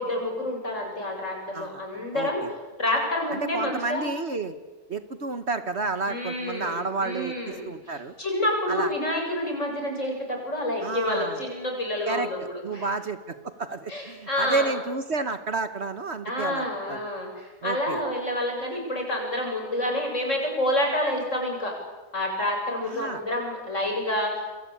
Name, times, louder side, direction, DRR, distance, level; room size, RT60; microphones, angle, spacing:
voice 1, 0.0-2.4 2.8-4.1 6.1-12.9 13.9-14.7 16.2-21.8 22.1-24.6, left 1 dB, 55° left, 1 dB, 8.1 m, -28 dB
voice 2, 2.1-2.5 3.3-4.5 4.9-7.3 7.6-8.1 8.7-8.9 10.8-11.4 12.1-17.0 17.6-18.0 22.9-23.2, right 3 dB, 50° right, 10 dB, 1.5 m, -31 dB
28.5 x 23.0 x 8.7 m, 1.3 s
omnidirectional pair, 1.6 m